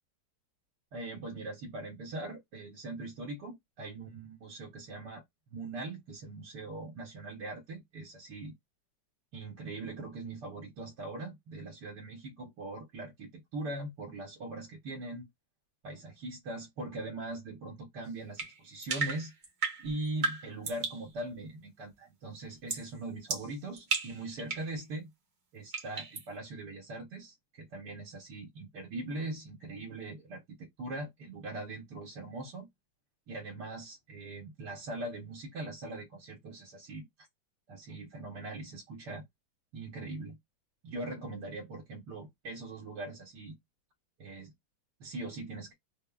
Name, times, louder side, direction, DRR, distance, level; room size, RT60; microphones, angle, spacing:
voice 1, 0.9-5.2 5.5-8.5 9.3-15.3 15.8-19.3 19.8-25.1 25.5-32.7 33.3-37.1 37.7-39.2 39.7-40.4 40.8-43.6 44.2-44.5 45.0-45.7, right 2 dB, 80° right, 1.5 m, -41 dB
sound 1, 18.4-21.1 22.7-22.9 23.3-24.7 25.7-26.3, right 4 dB, 45° right, 0.6 m, -35 dB
3.3 x 2.0 x 2.3 m
omnidirectional pair, 1.8 m